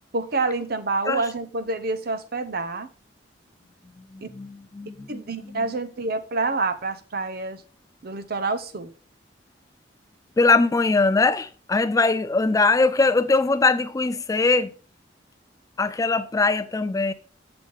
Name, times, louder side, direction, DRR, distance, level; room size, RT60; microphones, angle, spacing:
voice 1, 0.1-2.9 4.2-4.3 5.1-7.6 8.0-8.9, right 3 dB, 55° right, 0.8 m, -27 dB
voice 2, 4.0-5.7 10.4-14.7 15.8-17.1, left 3 dB, 20° left, 0.3 m, -22 dB
7.7 x 7.1 x 3.5 m
head